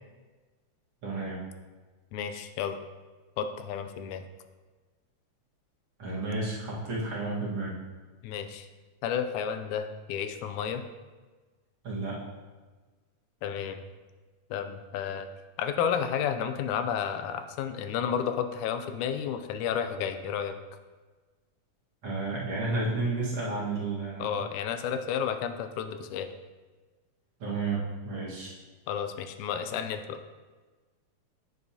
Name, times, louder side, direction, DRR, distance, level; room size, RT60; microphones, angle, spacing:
voice 1, 1.0-1.4 6.0-7.8 11.8-12.2 22.0-24.4 27.4-28.5, right 3 dB, 50° right, -6 dB, 2.2 m, -32 dB
voice 2, 2.1-2.8 3.4-4.2 8.2-8.7 9.0-10.8 13.4-13.8 14.5-15.3 15.6-20.6 24.2-26.3 28.9-30.2, left 8 dB, 85° left, 8 dB, 1.9 m, -31 dB
8.4 x 6.7 x 2.8 m, 1.3 s
omnidirectional pair, 3.4 m